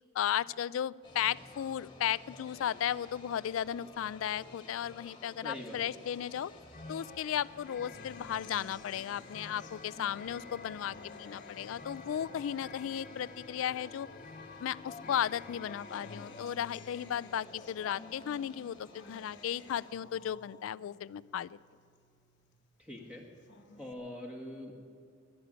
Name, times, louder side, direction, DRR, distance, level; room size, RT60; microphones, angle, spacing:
voice 1, 0.1-6.5 6.9-14.1 14.6-21.6, left 10 dB, 90° left, 21 dB, 0.3 m, -35 dB
sound 1, 1.0-20.0, left 2 dB, 25° left, 1.7 m, -54 dB
voice 2, 5.4-5.8 22.8-23.3 23.8-24.7, left 1 dB, 5° right, -1 dB, 1.9 m, -43 dB
sound 2, 6.5-16.4, left 4 dB, 45° left, 0.8 m, -50 dB
Acoustic guitar, 7.9-14.6 15.0-22.6 23.0-23.9, left 3 dB, 65° left, 1.1 m, -55 dB
12.0 x 11.0 x 10.0 m, 2.2 s
head